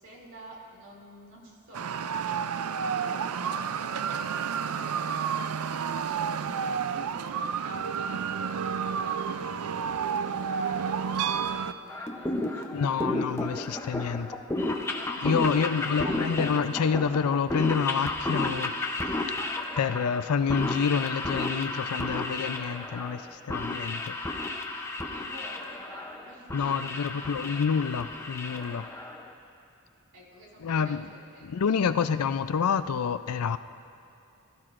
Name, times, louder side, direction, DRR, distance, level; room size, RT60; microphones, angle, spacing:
voice 1, 0.0-2.5 2.8-4.1 7.1-13.2 15.5-16.3 25.1-27.3 30.1-31.4, equal, 55° right, -3 dB, 2.8 m, -49 dB
sound 1, 1.7-11.7, right 7 dB, 75° right, 0.4 m, -30 dB
sound 2, 11.9-29.3, left 2 dB, 10° left, 0.7 m, -32 dB
voice 2, 12.7-14.3 15.2-18.8 19.8-24.2 26.5-28.9 30.6-31.1 31.4-33.6, left 6 dB, 85° left, 12 dB, 0.4 m, -28 dB
21.0 x 13.5 x 2.5 m, 2.6 s
head